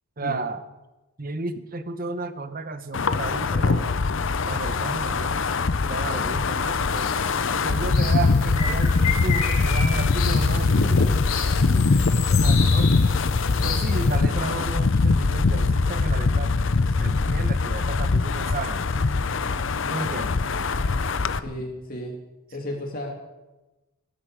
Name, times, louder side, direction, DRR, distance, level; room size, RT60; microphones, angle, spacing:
voice 1, 0.2-0.6 1.2-4.0 4.4-5.5 5.8-7.1 7.5-11.1 11.5-11.9 12.3-12.9 13.6-16.5 17.0-18.8 19.9-20.4, right 3 dB, 40° right, 11 dB, 1.0 m, -33 dB
Wind, 2.9-21.4, left 4 dB, 55° left, 0.6 m, -22 dB
sound 1, 6.1-6.3 6.5-14.2, left 6 dB, 75° left, 3.3 m, -33 dB
voice 2, 10.6-11.2 21.4-22.1 22.5-23.1, left 1 dB, 40° left, 0 dB, 2.8 m, -33 dB
sound 2, 17.0-20.2, equal, 90° right, 6.9 m, -46 dB
21.0 x 13.0 x 5.0 m, 1.1 s
head